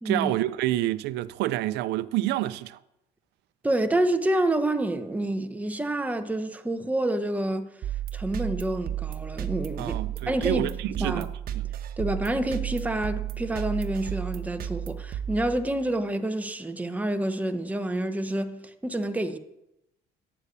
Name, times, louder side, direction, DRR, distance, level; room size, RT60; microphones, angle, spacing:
voice 1, 0.0-2.8 9.8-11.3 11.5-11.7, right 15 dB, 85° right, 0.6 m, -28 dB
voice 2, 3.6-7.7 8.1-10.0 10.3-11.3 12.0-19.4, right 1 dB, 10° right, 1.1 m, -28 dB
sound 1, 7.8-16.0, right 11 dB, 60° right, 1.2 m, -33 dB
12.5 x 8.5 x 8.2 m
cardioid pair, 110°, 17 cm